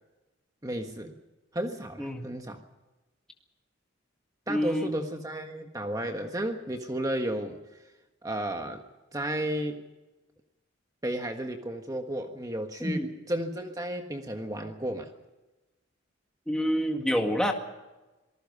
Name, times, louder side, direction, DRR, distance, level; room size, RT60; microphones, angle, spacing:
voice 1, 0.6-1.1 1.5-2.6 4.5-7.6 8.2-8.8 9.1-9.8 11.0-15.1, right 1 dB, 20° right, 4 dB, 1.4 m, -33 dB
voice 2, 2.0-2.3 4.5-4.9 12.8-13.1 16.5-17.5, equal, 5° left, 2 dB, 2.0 m, -27 dB
27.0 x 19.5 x 5.5 m, 1.1 s
head